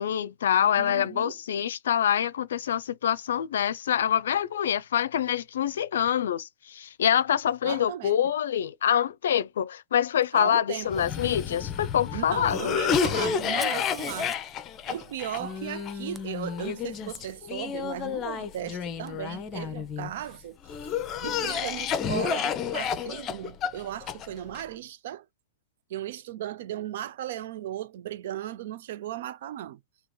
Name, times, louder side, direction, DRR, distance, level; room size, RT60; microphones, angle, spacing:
voice 1, 0.0-12.8, left 9 dB, 80° left, 0.5 m, -26 dB
voice 2, 0.7-1.4 7.6-8.2 10.3-11.1 12.1-14.4 14.9-20.6 20.8-25.3 25.9-29.8, right 12 dB, 65° right, 0.5 m, -36 dB
Cough, 10.9-20.1 20.7-24.6, left 7 dB, 30° left, 0.7 m, -30 dB
Fire, 13.4-17.2 19.1-19.2 20.0-20.4, right 1 dB, 5° right, 0.5 m, -47 dB
3.0 x 2.8 x 3.7 m
hypercardioid pair, 120°, 0 cm